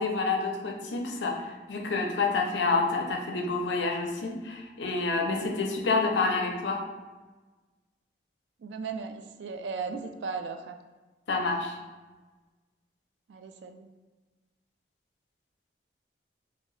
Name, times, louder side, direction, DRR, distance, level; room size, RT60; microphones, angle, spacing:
voice 1, 0.0-6.8 11.3-11.8, left 3 dB, 75° left, 2 dB, 0.5 m, -28 dB
voice 2, 8.6-10.8 13.3-13.9, right 5 dB, 80° right, 6 dB, 0.3 m, -36 dB
2.7 x 2.6 x 3.1 m, 1.2 s
head